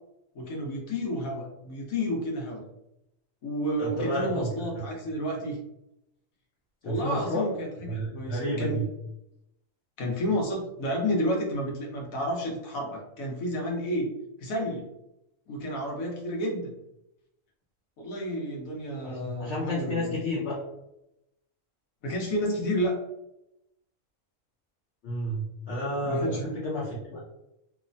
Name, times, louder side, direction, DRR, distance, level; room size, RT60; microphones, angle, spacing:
voice 1, 0.3-2.6 3.4-5.6 6.8-8.8 10.0-14.1 14.4-14.9 15.5-16.7 18.0-20.1 22.0-23.0 26.0-26.5, equal, 90° left, 0 dB, 1.2 m, -31 dB
voice 2, 3.8-4.3 4.8-5.0 6.8-7.5 7.9-8.9 19.0-20.6 25.0-27.2, equal, 60° left, -6 dB, 0.9 m, -31 dB
3.0 x 2.1 x 2.5 m, 0.85 s
omnidirectional pair, 1.4 m